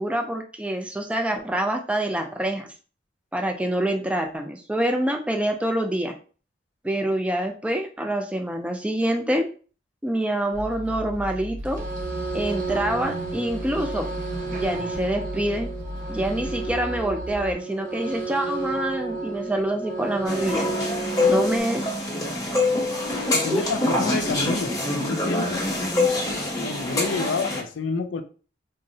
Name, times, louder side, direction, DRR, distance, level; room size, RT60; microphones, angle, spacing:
voice 1, 0.0-2.7 3.3-6.1 6.8-9.5 10.0-11.8 12.3-14.1 14.5-15.7 16.1-20.7 21.3-22.0 23.5-23.7, right 1 dB, 5° right, 3 dB, 0.3 m, -26 dB
sound 1, 10.5-17.5, equal, 70° right, 0.6 m, -36 dB
sound 2, 11.6-21.6, right 3 dB, 45° right, 0.9 m, -32 dB
sound 3, 20.3-27.6, left 2 dB, 20° left, 0.7 m, -25 dB
voice 2, 21.1-21.6 23.3-25.7 26.6-28.2, left 4 dB, 75° left, 9 dB, 0.4 m, -29 dB
3.6 x 2.0 x 2.6 m, 0.38 s
head